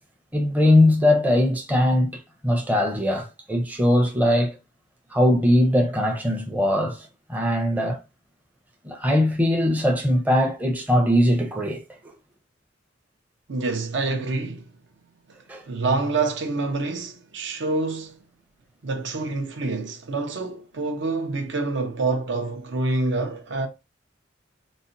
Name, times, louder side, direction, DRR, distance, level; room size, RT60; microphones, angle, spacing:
voice 1, 0.3-2.1 2.4-4.6 5.1-8.0 8.8-12.1 15.5-15.6, left 1 dB, 10° right, 0.5 m, -21 dB
voice 2, 13.5-14.7 15.7-18.2 18.8-23.7, right 3 dB, 65° right, 0.6 m, -27 dB
4.0 x 2.1 x 2.5 m
head